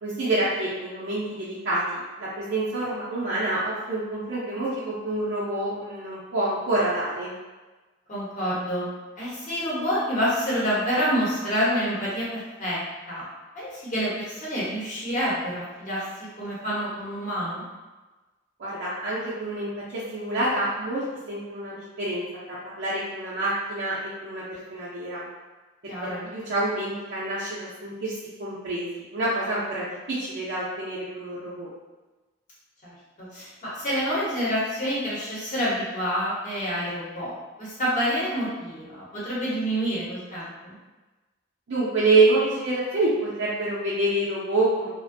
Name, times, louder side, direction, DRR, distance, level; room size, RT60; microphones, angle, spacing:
voice 1, 0.0-7.3 18.6-25.2 25.8-28.1 28.4-31.7 41.7-44.9, right 2 dB, 55° right, -9 dB, 0.5 m, -27 dB
voice 2, 8.1-8.9 9.2-12.8 13.1-13.2 13.5-16.0 16.4-17.6 25.9-26.2 32.8-33.5 33.7-37.3 37.6-40.7, equal, 40° left, -8 dB, 0.9 m, -27 dB
2.5 x 2.1 x 2.5 m, 1.2 s
head